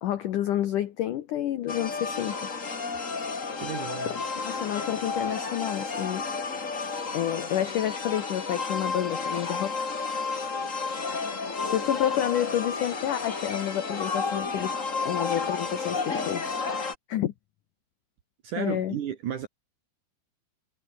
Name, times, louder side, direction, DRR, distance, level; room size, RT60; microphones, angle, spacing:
voice 1, 0.0-2.5 4.0-6.2 7.1-9.9 11.6-14.8 15.1-16.5 17.1-17.3 18.6-19.0, left 11 dB, 85° left, 1.8 m, -29 dB
sound 1, 1.7-16.9, left 4 dB, 50° left, 0.9 m, -32 dB
voice 2, 3.6-4.1 18.4-19.5, right 9 dB, 65° right, 2.1 m, -33 dB
omnidirectional pair, 5.5 m